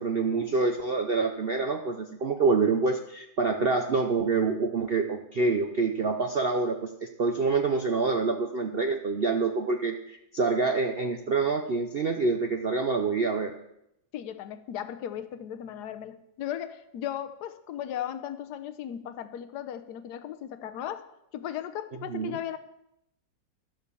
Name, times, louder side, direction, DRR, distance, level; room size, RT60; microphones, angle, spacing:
voice 1, 0.0-13.5 22.1-22.4, right 4 dB, 55° right, 5 dB, 0.6 m, -26 dB
voice 2, 14.1-22.6, left 10 dB, 70° left, 11 dB, 1.3 m, -36 dB
12.5 x 7.5 x 6.9 m, 0.81 s
omnidirectional pair, 1.9 m